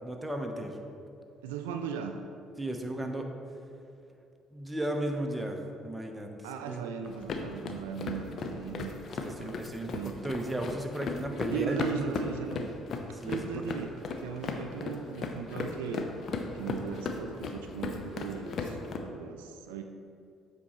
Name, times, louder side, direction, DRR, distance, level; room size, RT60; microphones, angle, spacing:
voice 1, 0.0-0.8 2.6-3.3 4.5-6.3 6.6-6.8 9.2-10.0 10.2-12.1 13.1-13.5, right 1 dB, 10° right, 3 dB, 0.9 m, -35 dB
voice 2, 1.4-2.3 6.4-8.9 9.2-9.6 9.9-10.2 11.5-12.7 13.2-16.1 16.5-19.8, right 7 dB, 85° right, 5 dB, 0.3 m, -38 dB
sound 1, 7.1-19.0, left 4 dB, 55° left, 0.6 m, -37 dB
8.2 x 5.5 x 3.0 m, 2.5 s
hypercardioid pair, 50°, 0 cm